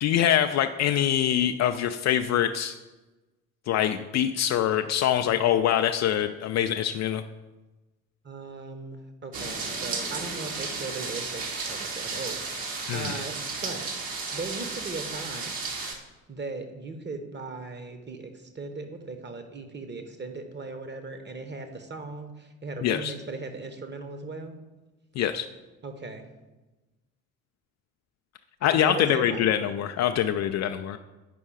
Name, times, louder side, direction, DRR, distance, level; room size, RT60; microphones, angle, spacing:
voice 1, 0.0-2.8 3.7-7.2 12.9-13.1 22.8-23.1 25.2-25.5 28.6-31.0, left 10 dB, 40° left, 8 dB, 0.4 m, -24 dB
voice 2, 8.2-15.6 16.3-24.6 25.8-26.3 28.7-29.7, right 3 dB, 25° right, 7 dB, 1.1 m, -38 dB
sound 1, 9.3-15.9, right 4 dB, 50° right, 1.6 m, -33 dB
8.4 x 5.3 x 4.8 m, 1.1 s
figure-of-eight pair, 50°, 42 cm